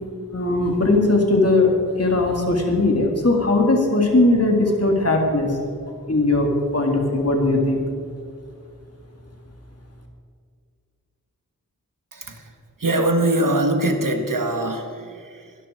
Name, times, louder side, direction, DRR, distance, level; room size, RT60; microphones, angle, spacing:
voice 1, 0.3-5.6 6.1-7.8, left 2 dB, 45° left, 1 dB, 2.9 m, -19 dB
voice 2, 12.1-12.5 12.8-15.5, right 1 dB, 65° right, 5 dB, 1.8 m, -23 dB
21.5 x 13.0 x 4.7 m, 2.3 s
wide cardioid pair, 65°, 34 cm